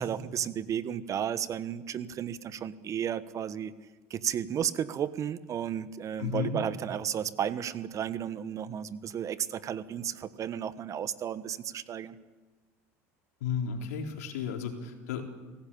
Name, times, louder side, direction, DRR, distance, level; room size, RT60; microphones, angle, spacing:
voice 1, 0.0-3.7 4.1-12.2, right 9 dB, 40° right, 14 dB, 1.3 m, -33 dB
voice 2, 6.2-6.6 13.4-15.2, left 7 dB, 85° left, 3 dB, 3.9 m, -33 dB
26.0 x 17.5 x 8.7 m, 1.3 s
supercardioid pair, 95°, 8 cm